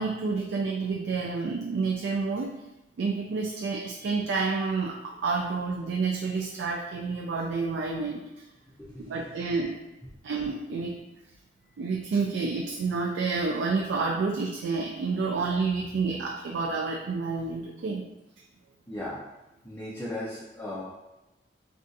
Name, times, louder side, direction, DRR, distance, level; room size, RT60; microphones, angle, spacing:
voice 1, 0.0-2.5 3.0-8.2 9.1-9.8 10.2-11.0 11.8-18.0, right 4 dB, 90° right, 0 dB, 0.3 m, -29 dB
voice 2, 8.8-9.4 18.9-19.2 19.6-20.8, left 1 dB, 10° left, -8 dB, 0.5 m, -37 dB
2.5 x 2.4 x 3.8 m, 0.99 s
head